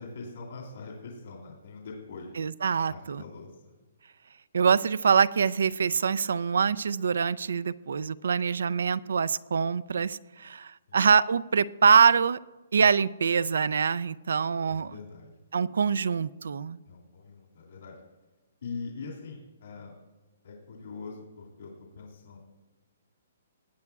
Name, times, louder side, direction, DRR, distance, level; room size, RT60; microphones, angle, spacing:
voice 1, 0.0-2.3 2.9-3.8 10.9-11.0 14.7-15.3 16.9-18.0 18.6-19.9 20.4-22.4, left 4 dB, 70° left, -1 dB, 2.6 m, -42 dB
voice 2, 2.4-3.2 4.5-12.4 12.7-14.9 15.5-16.8, right 6 dB, 85° right, 18 dB, 0.4 m, -24 dB
19.0 x 8.7 x 2.4 m, 1.2 s
hypercardioid pair, 165°, 0 cm